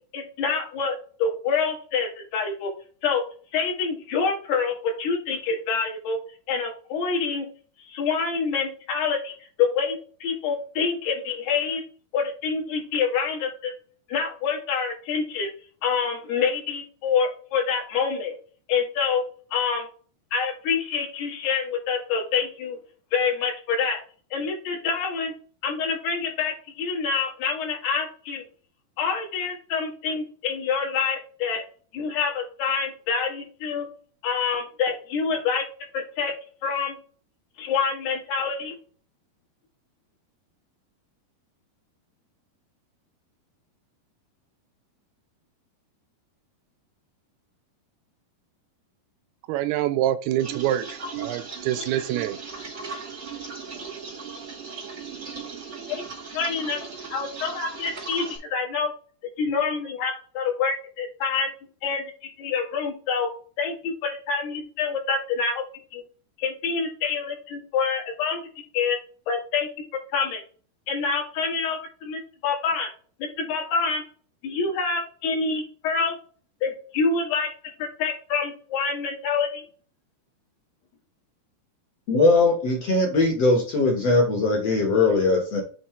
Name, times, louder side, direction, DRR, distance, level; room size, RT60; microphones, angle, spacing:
voice 1, 0.1-2.7 3.0-3.2 3.5-6.2 6.5-7.5 7.9-9.3 9.6-11.8 12.1-13.7 14.1-15.5 15.8-18.3 18.7-19.2 19.5-19.9 20.3-22.8 23.1-24.0 24.3-25.3 25.6-28.4 29.0-31.6 31.9-33.9 34.2-35.6 35.9-36.3 36.6-37.0 37.6-38.8 55.9-56.0 56.3-56.8 57.1-58.9 59.4-61.5 61.8-62.1 62.4-63.3 63.6-65.6 65.9-66.0 66.4-68.4 68.7-69.0 69.3-69.7 70.1-70.4 70.9-72.9 73.2-74.0 74.4-76.2 76.6-77.5 77.8-79.6, left 5 dB, 75° left, 3.9 m, -26 dB
voice 2, 49.5-52.4, right 12 dB, 80° right, 2.3 m, -26 dB
sound 1, 50.4-58.4, right 4 dB, 60° right, 0.7 m, -37 dB
voice 3, 82.1-85.6, left 3 dB, 55° left, 1.8 m, -20 dB
7.8 x 3.1 x 4.3 m
omnidirectional pair, 4.6 m